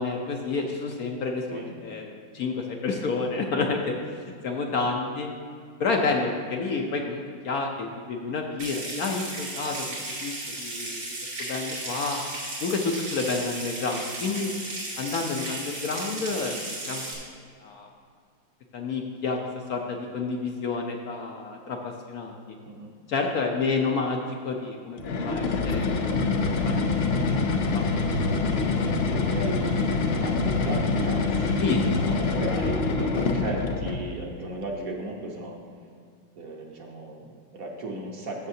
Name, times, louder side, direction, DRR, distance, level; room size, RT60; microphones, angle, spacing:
voice 1, 0.0-5.3 5.8-9.8 10.2-10.3 10.6-11.0 11.4-12.2 12.6-14.5 15.0-16.6 16.9-17.0 17.6-17.9 18.7-19.4 19.7-22.6 23.1-26.9 27.3-27.8 31.6-31.8, left 4 dB, 65° left, 1 dB, 1.0 m, -29 dB
Water tap faucet / Sink (filling or washing) / Trickle dribble, 8.6-17.1, right 2 dB, 85° right, 2.9 m, -35 dB
sound 1, 25.0-34.1, left 3 dB, 90° left, 0.5 m, -25 dB
voice 2, 29.0-29.9 30.2-35.6 36.4-38.5, right 1 dB, 55° right, 0 dB, 1.3 m, -36 dB
14.0 x 6.6 x 2.7 m, 2.2 s
omnidirectional pair, 2.0 m